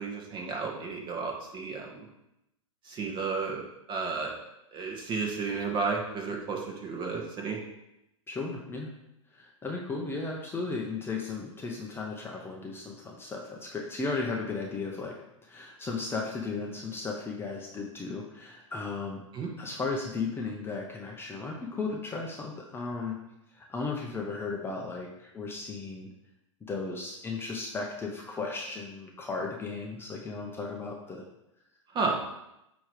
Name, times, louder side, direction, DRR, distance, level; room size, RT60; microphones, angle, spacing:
voice 1, 0.0-2.0 2.8-4.3 4.7-7.6 19.3-19.5 31.9-32.2, right 4 dB, 30° right, 0 dB, 1.5 m, -32 dB
voice 2, 8.3-8.9 9.3-15.2 15.4-19.2 19.6-23.2 23.5-26.1 26.7-31.2, left 4 dB, 15° left, -1 dB, 0.9 m, -35 dB
8.5 x 3.1 x 4.9 m, 0.87 s
hypercardioid pair, 120°, 17 cm